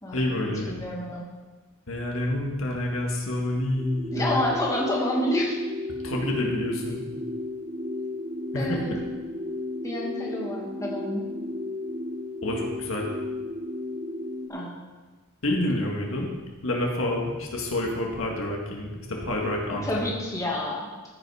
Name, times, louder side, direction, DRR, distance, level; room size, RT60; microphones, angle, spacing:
voice 1, 0.1-0.8 1.9-4.4 6.0-7.0 8.5-9.0 12.4-13.1 15.4-16.3 16.6-20.1, left 1 dB, 75° left, 0 dB, 1.8 m, -28 dB
voice 2, 0.7-1.2 4.1-5.6 8.5-9.0 9.8-11.2 14.5-14.7 19.8-20.9, left 1 dB, 15° left, -3 dB, 1.7 m, -28 dB
sound 1, 3.8-14.5, left 2 dB, 30° right, 0.5 m, -34 dB
14.0 x 5.8 x 4.9 m, 1.3 s
head